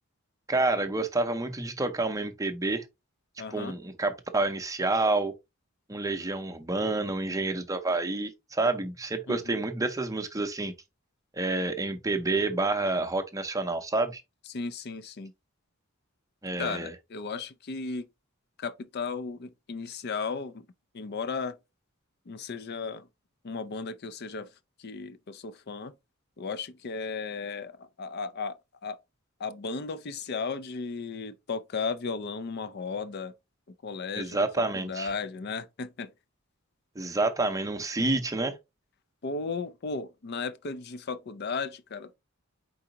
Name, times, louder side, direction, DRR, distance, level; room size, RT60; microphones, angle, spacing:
voice 1, 0.5-2.8 3.5-5.3 5.9-10.7 11.3-14.2 16.4-16.9 34.2-35.1 37.0-38.6, right 2 dB, 15° right, 0.6 m, -28 dB
voice 2, 3.4-3.8 9.3-9.6 14.5-15.3 16.6-18.1 18.6-20.7 20.9-21.6 22.3-23.1 23.4-24.5 24.8-25.9 26.4-28.6 28.8-29.0 29.4-33.3 33.8-36.1 39.2-42.1, left 4 dB, 50° left, 0.5 m, -35 dB
4.8 x 3.9 x 2.8 m
head